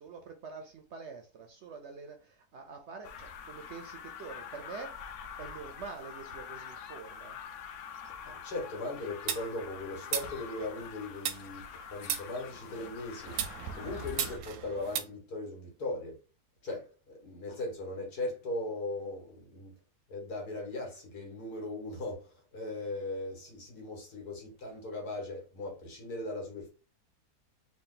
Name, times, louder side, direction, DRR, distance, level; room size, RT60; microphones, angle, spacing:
voice 1, 0.0-7.4 11.7-11.8, right 5 dB, 65° right, 0.7 m, -46 dB
sound 1, 3.0-14.4, left 7 dB, 65° left, 0.8 m, -45 dB
voice 2, 8.2-13.4 13.7-16.2 16.6-19.8 20.1-26.7, left 2 dB, 85° left, 1.9 m, -39 dB
sound 2, 9.3-10.9 11.2-12.8 13.3-15.0, right 9 dB, 85° right, 1.1 m, -37 dB
3.8 x 2.3 x 3.8 m
omnidirectional pair, 1.6 m